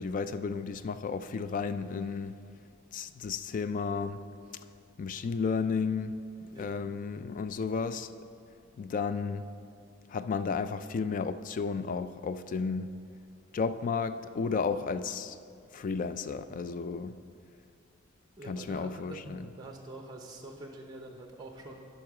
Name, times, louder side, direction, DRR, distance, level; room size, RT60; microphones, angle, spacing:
voice 1, 0.0-2.4 2.9-4.2 5.0-8.1 8.8-9.5 10.1-12.9 13.5-15.4 15.7-17.2 18.4-19.5, left 5 dB, 40° left, 0.3 m, -33 dB
voice 2, 18.4-21.9, right 2 dB, 20° right, 0.7 m, -45 dB
12.0 x 5.4 x 4.8 m
head